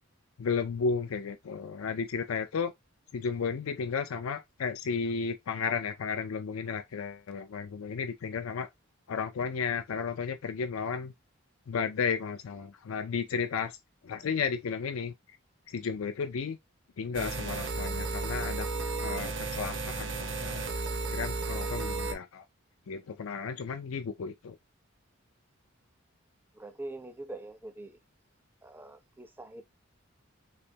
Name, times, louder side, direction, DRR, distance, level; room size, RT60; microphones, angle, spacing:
voice 1, 0.4-2.7 3.1-8.7 9.1-11.1 11.7-13.8 14.0-15.1 15.7-16.6 17.0-18.7 19.0-20.6 21.1-22.4 22.9-24.6, left 5 dB, 80° left, 0.4 m, -33 dB
sound 1, 17.1-22.1, right 3 dB, 60° right, 0.7 m, -33 dB
voice 2, 26.5-28.0 28.6-29.6, right 2 dB, 10° right, 0.4 m, -43 dB
3.4 x 3.2 x 2.8 m
head